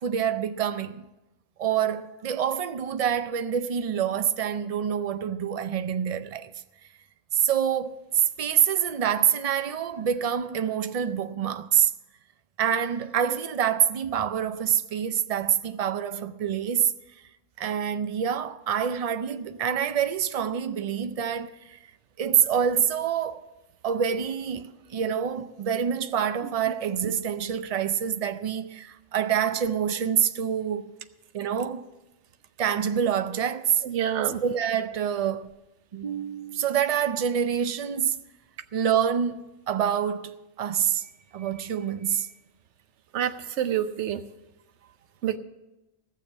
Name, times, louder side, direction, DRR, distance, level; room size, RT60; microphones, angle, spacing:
voice 1, 0.0-1.1 1.6-6.5 7.3-11.9 12.6-16.9 17.6-21.8 22.2-23.4 23.8-30.9 31.3-31.9 32.6-33.8 34.4-35.5 35.9-38.2 38.7-42.3, right 8 dB, 55° right, 0.4 m, -26 dB
voice 2, 33.8-34.4 43.1-44.2 45.2-45.4, right 10 dB, 70° right, 1.0 m, -27 dB
14.5 x 6.8 x 7.2 m
omnidirectional pair, 1.2 m